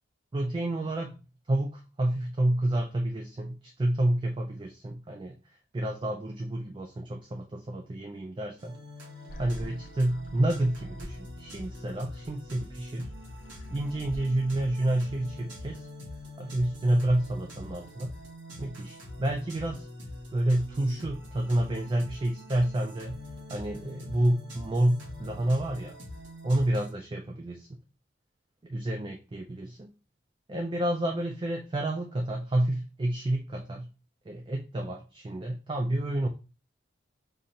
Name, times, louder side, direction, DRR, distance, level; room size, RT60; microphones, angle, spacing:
voice 1, 0.3-1.2 1.5-5.3 5.7-8.8 9.4-13.1 13.7-15.9 16.4-18.1 18.6-19.9 20.3-23.2 23.5-26.0 26.4-27.6 28.7-29.9 30.5-33.9 34.3-36.3, right 1 dB, 25° right, 3 dB, 0.3 m, -29 dB
sound 1, 8.6-26.9, left 1 dB, 80° right, 1.4 m, -44 dB
sound 2, 9.3-14.7, equal, 45° left, 0.4 m, -47 dB
5.1 x 2.4 x 2.7 m, 0.31 s
head